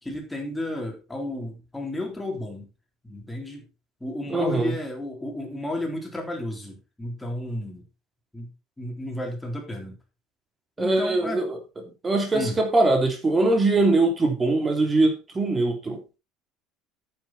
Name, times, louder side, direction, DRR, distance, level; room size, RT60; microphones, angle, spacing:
voice 1, 0.0-2.7 3.0-3.7 4.0-7.8 8.3-8.5 8.8-9.9 10.8-11.4 12.3-12.6, left 1 dB, 5° left, 3.7 m, -32 dB
voice 2, 4.3-4.8 10.8-11.6 12.0-16.0, right 2 dB, 15° right, 3.4 m, -22 dB
10.5 x 8.9 x 4.3 m
cardioid pair, 150°, 0 cm